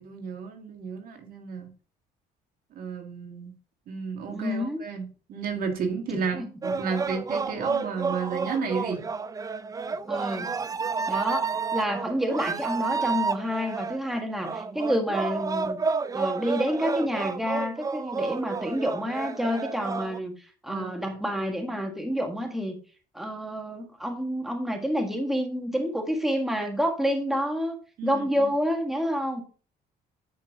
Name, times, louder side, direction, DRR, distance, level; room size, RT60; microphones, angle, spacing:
voice 1, 0.0-1.7 2.7-3.5 3.9-9.1 20.7-21.4 28.0-28.5, right 5 dB, 60° right, 4 dB, 2.0 m, -33 dB
voice 2, 4.3-4.8 6.1-6.5 10.1-10.5 11.1-15.8 16.1-20.3 20.6-22.8 23.1-27.8 28.0-29.4, equal, ahead, 4 dB, 1.6 m, -28 dB
sound 1, 6.6-20.2, right 5 dB, 20° right, 0.4 m, -30 dB
10.0 x 5.3 x 3.6 m, 0.38 s
cardioid pair, 110°, 17 cm